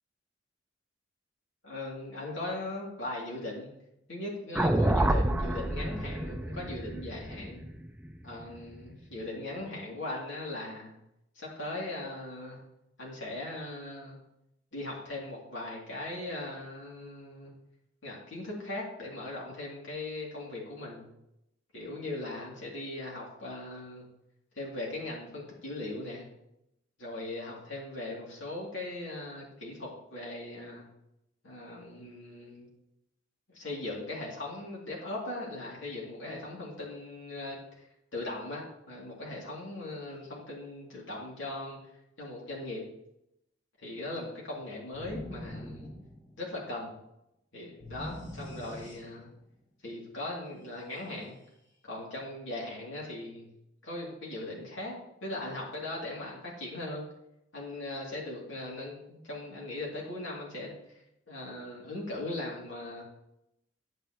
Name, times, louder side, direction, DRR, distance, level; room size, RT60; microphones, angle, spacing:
voice 1, 1.6-3.7 4.1-7.6 8.2-10.9 11.3-12.6 13.0-14.2 14.7-17.5 18.0-21.1 21.7-24.1 24.5-26.3 27.0-30.8 31.4-32.7 33.5-37.6 38.1-41.8 42.2-42.8 43.8-45.9 46.4-46.9 47.5-49.3 49.8-51.3 51.8-53.5 53.8-54.9 55.2-57.0 57.5-60.8 61.3-63.0, left 2 dB, 75° left, -3 dB, 2.8 m, -39 dB
sound 1, 4.5-8.8, right 1 dB, 5° right, 0.4 m, -29 dB
sound 2, 44.9-46.7 47.8-49.5, left 1 dB, 20° left, 1.9 m, -43 dB
9.3 x 9.1 x 3.1 m, 0.82 s
head